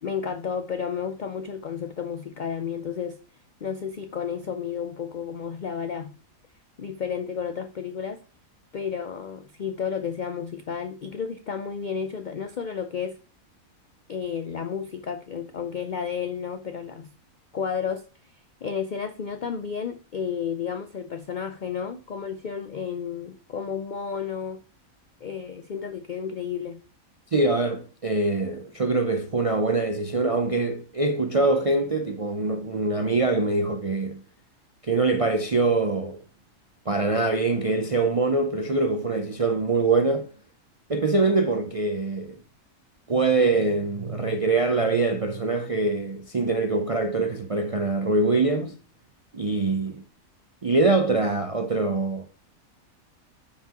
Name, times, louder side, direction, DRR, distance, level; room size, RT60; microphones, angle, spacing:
voice 1, 0.0-3.2 3.6-6.1 6.8-8.2 8.7-13.2 14.1-17.1 17.5-18.0 18.6-24.6 25.2-26.8, left 7 dB, 75° left, 0.4 m, -32 dB
voice 2, 27.3-34.2 34.9-36.2 36.9-40.3 40.9-42.4 43.1-48.8 49.3-50.0 50.6-52.3, right 3 dB, 50° right, 0.4 m, -24 dB
9.7 x 5.8 x 2.9 m
omnidirectional pair, 1.5 m